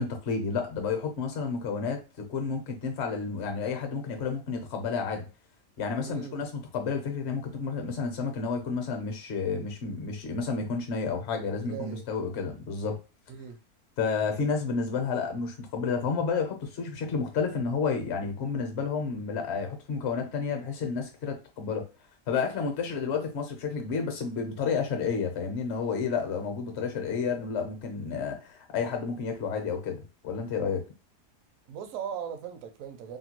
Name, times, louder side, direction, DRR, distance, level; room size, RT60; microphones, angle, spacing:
voice 1, 0.0-5.3 5.8-13.0 14.0-21.9 22.3-30.9, left 5 dB, 55° left, 0.8 m, -31 dB
voice 2, 6.0-6.4 11.6-12.1 13.3-13.6 31.7-33.2, right 8 dB, 70° right, 0.9 m, -38 dB
2.8 x 2.2 x 2.9 m
omnidirectional pair, 1.6 m